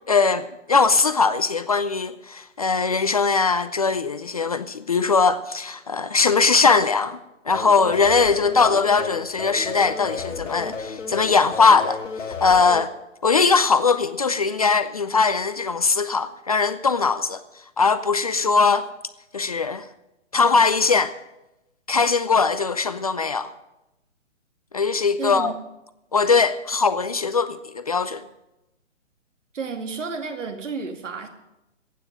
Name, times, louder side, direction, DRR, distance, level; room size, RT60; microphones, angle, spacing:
voice 1, 0.1-7.2 7.5-12.0 12.4-12.9 13.2-17.4 17.8-18.9 19.3-19.9 20.3-21.1 21.9-23.5 24.7-25.5 26.1-28.2, left 4 dB, 30° left, 0.4 m, -20 dB
sound 1, 7.5-12.8, left 5 dB, 75° left, 1.8 m, -33 dB
voice 2, 25.2-25.5 29.5-31.3, right 4 dB, 75° right, 2.4 m, -31 dB
15.0 x 9.2 x 6.6 m
hypercardioid pair, 145°, 38 cm